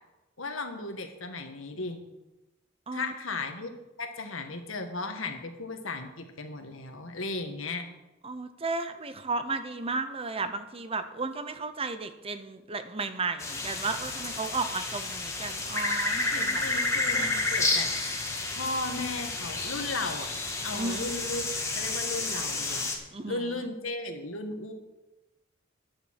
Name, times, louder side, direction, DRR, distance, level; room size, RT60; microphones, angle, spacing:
voice 1, 0.4-2.0 2.9-3.7 4.0-7.9 16.3-17.9 18.5-20.3 20.6-21.4 21.7-22.9 23.3-24.7, left 3 dB, 85° left, 5 dB, 1.6 m, -35 dB
voice 2, 8.2-16.6 17.1-17.4 20.7-21.1 23.1-23.7, right 3 dB, 30° right, 10 dB, 0.8 m, -34 dB
sound 1, 13.4-22.9, left 2 dB, 15° left, 1.8 m, -31 dB
11.0 x 7.0 x 7.6 m, 1.0 s
head